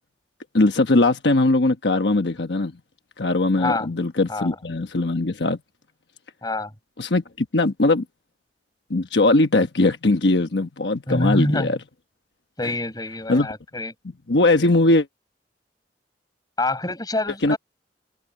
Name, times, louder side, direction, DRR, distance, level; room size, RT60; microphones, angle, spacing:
voice 1, 0.5-2.7 3.2-5.6 7.0-8.0 8.9-11.8 12.6-12.7 13.3-13.5 14.3-15.1 17.4-17.6, left 2 dB, 75° left, 1.2 m, -20 dB
voice 2, 11.1-11.7 12.6-13.9 16.6-17.6, left 2 dB, 25° left, 5.8 m, -26 dB
head